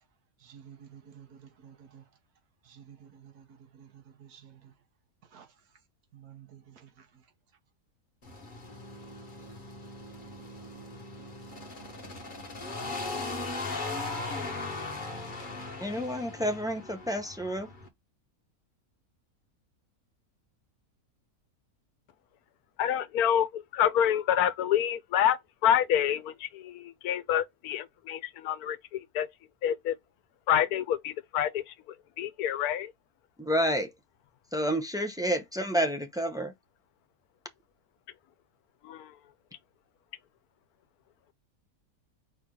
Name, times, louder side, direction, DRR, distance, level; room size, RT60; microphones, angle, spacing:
voice 1, 0.4-2.1 2.6-4.8 5.2-5.8 6.1-7.3 11.2-11.4, right 8 dB, 85° right, 1.5 m, -53 dB
sound 1, 8.2-17.9, left 3 dB, 35° left, 1.3 m, -39 dB
voice 2, 15.8-17.7 33.4-33.9 34.5-36.5, equal, 5° right, 0.3 m, -29 dB
voice 3, 22.8-29.3 29.6-30.0 30.5-32.9 38.8-39.2, left 10 dB, 80° left, 1.2 m, -28 dB
5.0 x 2.8 x 3.7 m
omnidirectional pair, 1.6 m